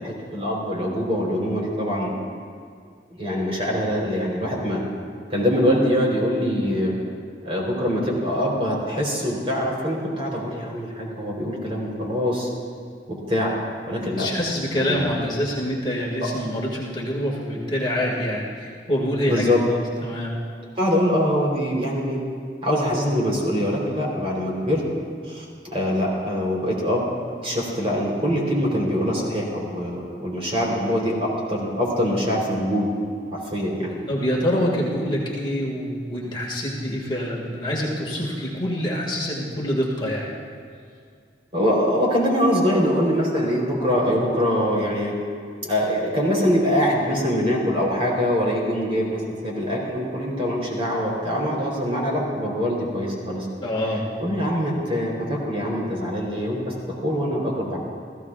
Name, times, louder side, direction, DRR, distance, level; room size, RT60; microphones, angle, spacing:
voice 1, 0.0-2.1 3.2-4.8 5.3-6.9 7.4-12.5 13.1-13.5 13.9-14.3 14.7-15.2 16.2-16.3 19.2-19.6 20.8-22.2 22.6-24.8 25.3-27.1 27.4-32.9 33.3-34.0 41.5-45.1 45.7-53.5 54.2-56.7 57.0-57.8, equal, 35° right, -3 dB, 3.9 m, -23 dB
voice 2, 14.2-20.4 34.1-40.3 53.6-54.3, equal, 25° left, -4 dB, 2.2 m, -26 dB
29.5 x 16.0 x 2.5 m, 2.2 s
head